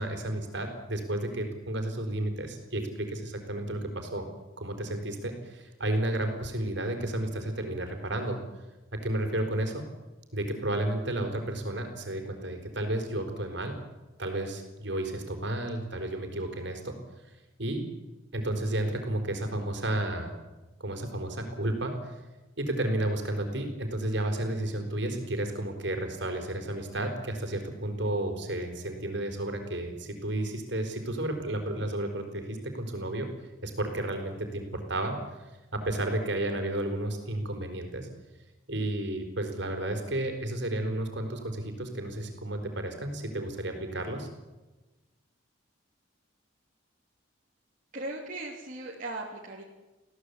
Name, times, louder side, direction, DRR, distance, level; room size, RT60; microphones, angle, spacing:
voice 1, 0.0-4.3 4.6-8.4 8.9-9.8 10.3-13.7 14.2-17.0 17.6-17.8 18.3-20.3 20.8-22.2 22.6-33.3 33.6-35.2 35.7-38.1 38.7-44.3, right 1 dB, 60° right, 5 dB, 4.4 m, -32 dB
voice 2, 47.9-49.6, right 2 dB, 40° right, -3 dB, 3.1 m, -38 dB
22.0 x 16.5 x 8.3 m, 1.1 s
head